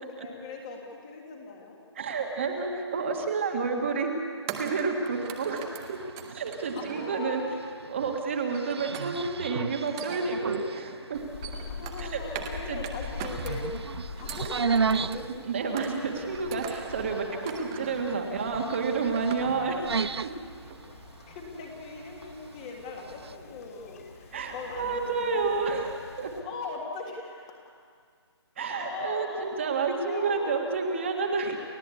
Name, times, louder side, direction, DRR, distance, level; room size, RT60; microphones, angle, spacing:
voice 1, 0.0-1.8 5.4-5.8 6.7-7.4 11.7-15.3 17.1-17.5 20.9-25.6 26.4-27.6 28.6-30.9, left 4 dB, 15° left, 1 dB, 1.7 m, -40 dB
voice 2, 1.9-4.1 4.6-6.0 6.3-7.4 7.8-11.2 12.0-12.2 12.7-12.8 15.4-19.9 20.2-20.3 24.3-26.3 28.6-31.6, right 4 dB, 25° right, 2 dB, 1.6 m, -30 dB
sound 1, 3.1-3.3 4.5-7.4 8.5-9.4 9.8-10.7 11.2-12.6 12.8-13.8 14.2-15.3 15.8-16.2 16.5-17.1 17.5-18.1 18.6-18.7 19.0-19.8 20.0-20.3 20.7-20.8, right 7 dB, 10° right, 0.7 m, -41 dB
sound 2, 5.1-23.4, right 5 dB, 65° right, 0.6 m, -36 dB
sound 3, 11.1-26.4, left 4 dB, 30° left, 2.3 m, -44 dB
29.5 x 13.5 x 8.4 m, 2.1 s
hypercardioid pair, 175°, 15 cm